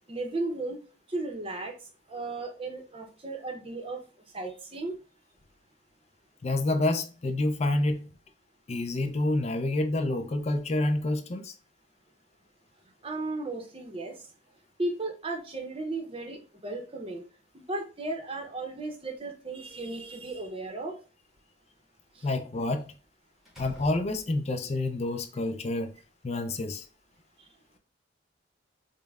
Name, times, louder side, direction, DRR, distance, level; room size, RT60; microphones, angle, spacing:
voice 1, 0.1-0.8 1.1-4.0 4.3-4.9 13.0-14.3 14.8-17.2 17.5-21.0 22.1-22.3 27.4-27.5, right 2 dB, 30° right, 0.7 m, -35 dB
voice 2, 6.4-8.1 8.7-11.5 22.2-22.9 23.6-25.9 26.2-26.9, left 2 dB, 35° left, 0.4 m, -28 dB
Slam, 19.6-20.6 22.8-23.0 23.4-24.7, equal, ahead, 1.0 m, -51 dB
5.1 x 2.1 x 2.3 m
head